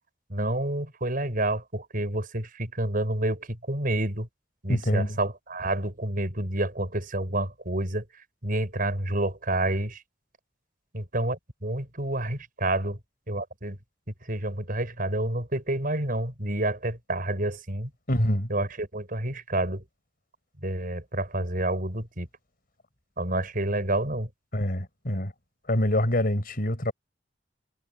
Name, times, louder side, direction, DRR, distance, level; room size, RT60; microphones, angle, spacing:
voice 1, 0.3-4.3 4.6-8.0 8.4-10.0 10.9-13.0 13.3-13.8 14.2-17.9 18.5-19.8 20.6-22.3 23.2-24.3, right 1 dB, 50° right, 6.0 m, -29 dB
voice 2, 4.7-5.2 18.1-18.5 24.5-25.3 25.7-26.9, left 1 dB, 50° left, 4.8 m, -25 dB
head